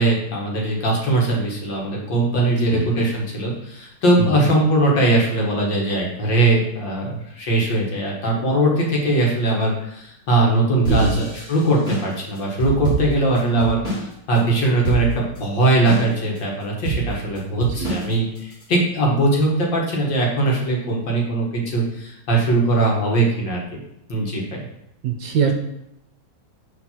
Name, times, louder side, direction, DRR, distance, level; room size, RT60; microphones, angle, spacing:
voice 1, 0.0-23.6 24.1-24.4, right 2 dB, 65° left, -2 dB, 2.4 m, -20 dB
sound 1, 10.8-14.1 14.4-14.5 14.8-15.4 15.9-16.4 16.8-18.6, right 4 dB, 40° left, 2.2 m, -26 dB
voice 2, 10.9-11.2 17.6-18.0 25.0-25.5, right 5 dB, 65° right, 4 dB, 1.3 m, -23 dB
6.7 x 4.3 x 5.8 m, 0.80 s
omnidirectional pair, 2.2 m